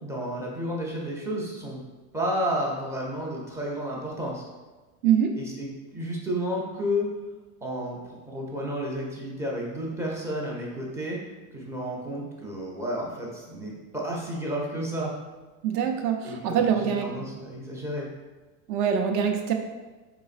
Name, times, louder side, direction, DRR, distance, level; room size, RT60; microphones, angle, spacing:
voice 1, 0.0-1.8 2.1-4.4 5.4-7.1 7.6-11.2 11.5-15.1 16.2-18.1, equal, 5° right, -3 dB, 0.4 m, -31 dB
voice 2, 15.6-17.1 18.7-19.5, right 8 dB, 55° right, 4 dB, 0.6 m, -24 dB
3.9 x 3.2 x 2.4 m, 1.3 s
supercardioid pair, 130°, 44 cm